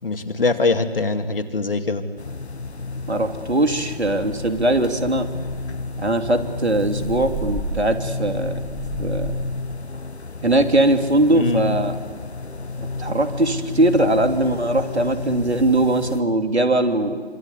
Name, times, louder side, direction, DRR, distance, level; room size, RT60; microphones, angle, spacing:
voice 1, 0.0-2.0 11.3-11.6, left 3 dB, 60° left, 6 dB, 2.5 m, -22 dB
sound 1, 2.2-16.2, left 3 dB, 85° left, 1.5 m, -31 dB
voice 2, 3.1-5.3 6.0-8.6 9.0-9.3 10.4-11.9 13.0-17.2, right 1 dB, 85° right, 5 dB, 3.3 m, -20 dB
sound 2, 4.5-4.9 5.4-9.6, right 2 dB, 5° right, 3.3 m, -33 dB
26.0 x 26.0 x 8.3 m, 1.5 s
figure-of-eight pair, 165°, 32 cm